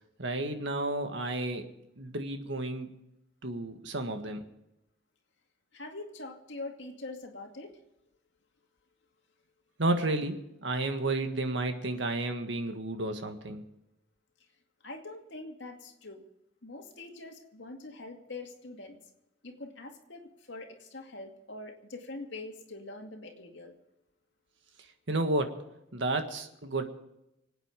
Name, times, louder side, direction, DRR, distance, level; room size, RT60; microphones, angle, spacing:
voice 1, 0.2-1.7 2.0-2.9 3.4-4.4 9.8-13.6 25.1-25.6 25.9-26.8, right 2 dB, 70° right, 6 dB, 1.6 m, -31 dB
voice 2, 5.7-7.8 14.8-16.2 16.6-19.0 19.4-23.8, left 2 dB, 70° left, 3 dB, 2.3 m, -44 dB
25.5 x 9.0 x 5.1 m, 0.86 s
head